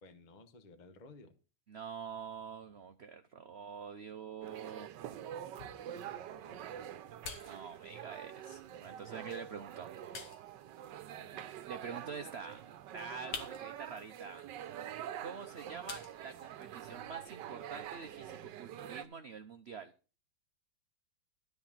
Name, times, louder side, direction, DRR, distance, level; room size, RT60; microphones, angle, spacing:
voice 1, 0.0-1.3 5.9-6.9 11.1-11.5 15.7-16.0, left 3 dB, 30° left, 9 dB, 1.1 m, -57 dB
voice 2, 1.7-4.9 7.5-9.9 11.7-12.7 12.9-14.5 15.2-19.9, right 6 dB, 55° right, 7 dB, 0.8 m, -46 dB
sound 1, 4.4-19.0, right 10 dB, 80° right, 1.4 m, -46 dB
sound 2, 5.0-17.0, left 5 dB, 75° left, 1.9 m, -53 dB
13.0 x 4.6 x 7.3 m, 0.36 s
omnidirectional pair, 1.9 m